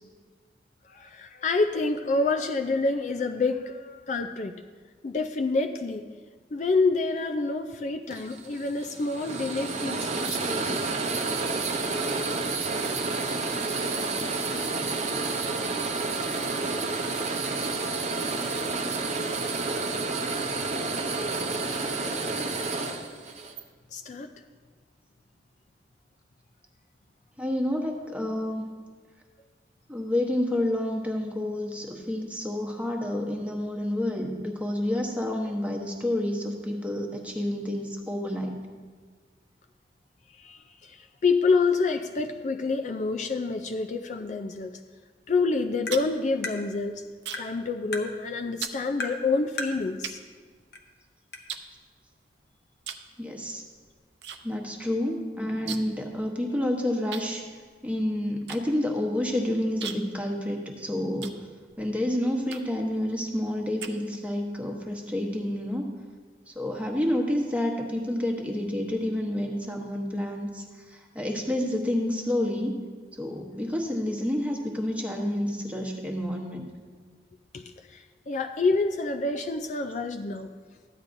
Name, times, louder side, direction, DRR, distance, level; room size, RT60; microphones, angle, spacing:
voice 1, 0.9-4.6 5.0-6.1 6.5-10.8 23.9-24.3 40.4-44.8 45.3-47.0 47.4-50.2 77.5-80.5, left 3 dB, 45° left, 6 dB, 0.4 m, -28 dB
sound 1, 8.1-23.6, right 3 dB, 40° right, 0.7 m, -30 dB
voice 2, 27.4-28.6 29.9-38.6 53.2-53.6 54.4-57.4 57.8-61.3 61.8-65.9 66.5-72.7 73.2-76.7, left 1 dB, 10° right, 1 dB, 1.1 m, -29 dB
sound 2, 45.6-47.6 47.9-48.2 48.6-48.8 49.5-49.6 50.0-51.0 51.5-52.3 52.8-53.1 53.4-54.4 54.7-54.8 55.0-56.0 56.3-56.4 57.1-61.9 62.5-62.9 63.4-64.4, right 7 dB, 80° right, 0.7 m, -40 dB
Tap, 45.9-46.0 46.4-46.6 47.3-47.5 47.9-48.1 49.0-49.2 49.6-49.8 50.7-50.8 51.3-51.4, left 2 dB, 60° left, 0.9 m, -33 dB
14.0 x 9.7 x 2.6 m, 1.5 s
head